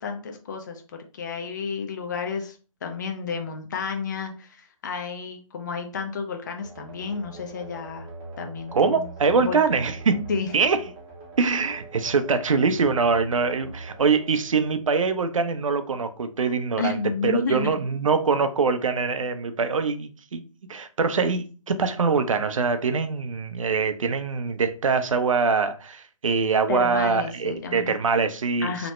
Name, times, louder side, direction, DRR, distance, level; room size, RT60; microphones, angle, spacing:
voice 1, 0.0-8.1 8.4-9.1 9.4-9.6 10.3-10.5 16.8-17.8 26.7-27.9 28.6-28.9, left 5 dB, 35° left, 0.5 m, -31 dB
sound 1, 6.6-15.3, right 3 dB, 20° right, 0.6 m, -42 dB
voice 2, 8.7-10.3 10.5-10.8 11.4-20.4 20.7-28.9, right 5 dB, 70° right, 0.5 m, -23 dB
3.0 x 2.1 x 3.0 m
figure-of-eight pair, 145°, 18 cm